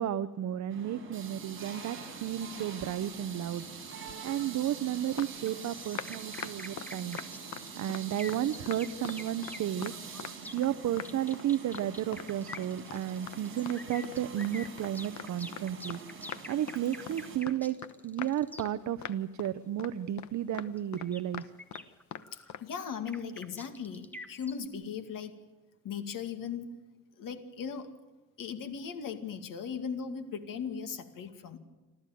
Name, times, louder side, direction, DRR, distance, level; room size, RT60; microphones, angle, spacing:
voice 1, 0.0-3.7 4.2-7.2 7.7-9.9 10.5-16.0 16.5-17.8 18.0-21.5, right 11 dB, 55° right, 13 dB, 0.7 m, -33 dB
sound 1, 0.7-17.4, right 5 dB, 35° right, 6.6 m, -45 dB
sound 2, 3.8-4.5 5.2-8.0 8.3-9.6 9.8-10.7 11.0-11.5 11.7-11.9 12.1-12.3 12.5-12.6 12.9-13.8 14.0-16.0 16.3-16.8 17.1-17.2 17.5-17.9 18.2-18.7 19.0-19.5 19.8-19.9 20.2-21.8 22.1-22.2 22.5-22.6, left 9 dB, 55° left, 1.0 m, -42 dB
sound 3, 5.5-18.7 20.8-24.7, left 1 dB, 5° left, 1.3 m, -47 dB
voice 2, 22.3-25.4 25.8-26.7 27.2-27.9 28.4-31.6, left 6 dB, 70° left, 8 dB, 2.3 m, -38 dB
27.5 x 13.5 x 9.2 m, 1.2 s
cardioid pair, 170°, 34 cm